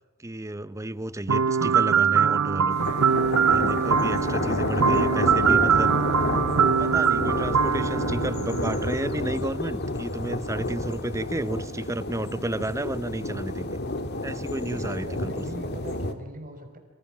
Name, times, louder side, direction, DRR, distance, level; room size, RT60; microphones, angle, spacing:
voice 1, 0.2-2.9 3.4-5.9 6.8-13.8 14.2-15.5, right 1 dB, 15° right, 0.7 m, -32 dB
sound 1, 1.3-9.1, right 7 dB, 85° right, 0.7 m, -23 dB
sound 2, 2.7-16.1, left 2 dB, 50° left, 2.1 m, -30 dB
voice 2, 4.5-5.1 5.4-5.9 14.6-16.8, right 1 dB, 40° right, 4.9 m, -42 dB
27.0 x 26.0 x 6.1 m
head